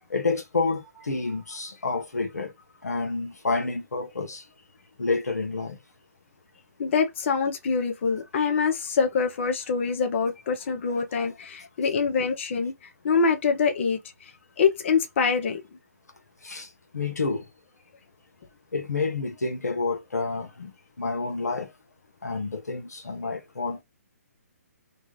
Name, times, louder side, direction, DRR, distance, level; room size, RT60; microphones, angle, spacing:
voice 1, 0.1-2.5 2.8-4.4 5.0-5.8 16.4-16.7 16.9-17.4 18.7-20.7 21.0-21.7 22.2-23.8, left 3 dB, 90° left, 1.0 m, -29 dB
voice 2, 6.8-14.3 14.6-15.6, left 5 dB, 50° left, 0.8 m, -25 dB
3.0 x 2.4 x 3.1 m
hypercardioid pair, 140°, 8 cm